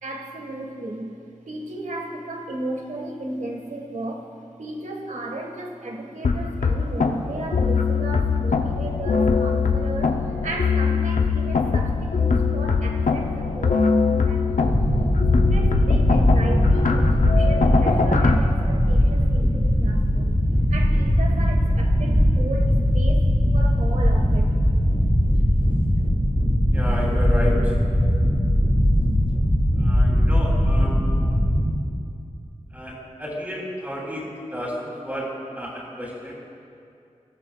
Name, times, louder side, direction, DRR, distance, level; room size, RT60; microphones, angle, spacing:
voice 1, 0.0-1.2 1.5-4.3 4.6-14.9 15.4-20.4 20.7-23.3 23.5-24.5, right 2 dB, 80° right, 1 dB, 1.6 m, -35 dB
sound 1, 6.2-18.4, left 5 dB, 85° left, 0.7 m, -22 dB
sound 2, 14.6-31.6, equal, 15° left, 3.6 m, -20 dB
voice 2, 26.7-27.7 29.8-31.0 32.7-36.3, equal, 15° right, -5 dB, 3.2 m, -31 dB
22.0 x 13.5 x 2.4 m, 2.5 s
wide cardioid pair, 75°, 13 cm